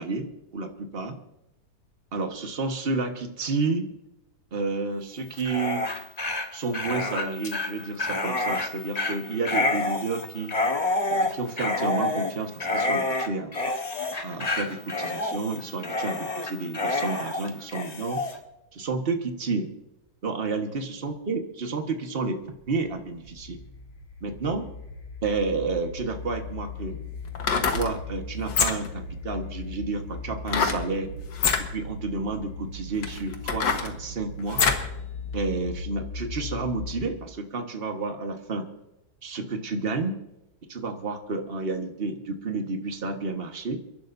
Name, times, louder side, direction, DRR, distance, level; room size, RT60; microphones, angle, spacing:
voice 1, 0.0-1.2 2.1-3.9 4.5-5.9 6.5-10.5 11.1-13.6 14.2-18.2 18.7-19.7 20.2-22.4 22.7-23.6 24.2-24.7 25.2-27.0 27.5-31.1 31.6-34.6 35.3-38.7 39.2-40.2 40.7-43.8, right 3 dB, 35° right, 4 dB, 1.6 m, -30 dB
Dog, 5.3-18.4, left 2 dB, 25° left, 1.3 m, -28 dB
sound 1, 22.4-37.3, left 3 dB, 60° left, 5.4 m, -38 dB
sound 2, 26.1-26.2 27.3-27.9 28.4-29.0 30.5-30.8 31.3-31.6 32.4-32.5 33.0-34.9 35.3-35.4, left 5 dB, 85° left, 2.0 m, -25 dB
30.0 x 11.5 x 2.7 m, 0.89 s
omnidirectional pair, 1.9 m